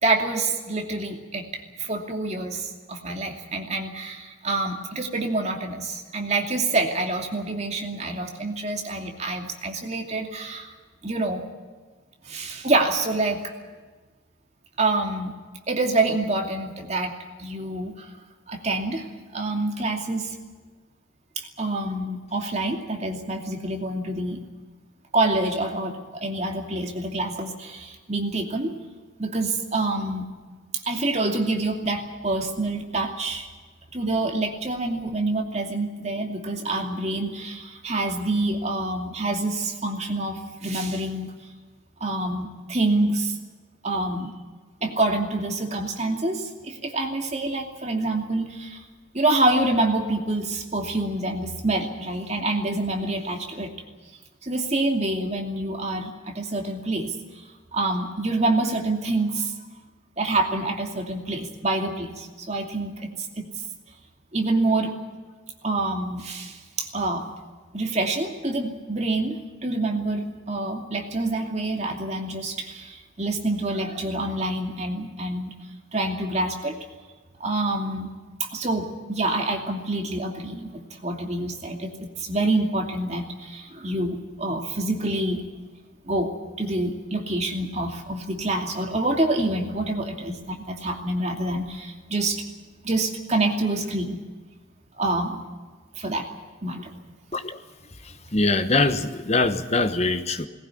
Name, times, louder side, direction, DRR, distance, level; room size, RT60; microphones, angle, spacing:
voice 1, 0.0-10.7 11.0-11.4 12.2-13.4 14.8-15.3 15.7-17.1 17.4-18.1 18.5-19.1 19.3-20.4 21.4-24.4 25.1-28.7 29.2-30.2 30.7-33.5 33.9-41.3 42.0-43.4 43.8-44.3 44.8-48.8 49.1-53.7 54.4-59.5 60.2-63.5 64.3-64.9 65.6-67.2 67.7-75.5 75.9-76.8 77.4-78.1 78.4-85.4 86.0-92.4 92.8-94.2 95.0-95.4 95.9-96.3 96.6-96.9, right 2 dB, 35° right, 2 dB, 2.6 m, -27 dB
voice 2, 98.3-100.5, left 3 dB, 35° left, 9 dB, 1.2 m, -23 dB
19.5 x 17.0 x 9.9 m, 1.4 s
head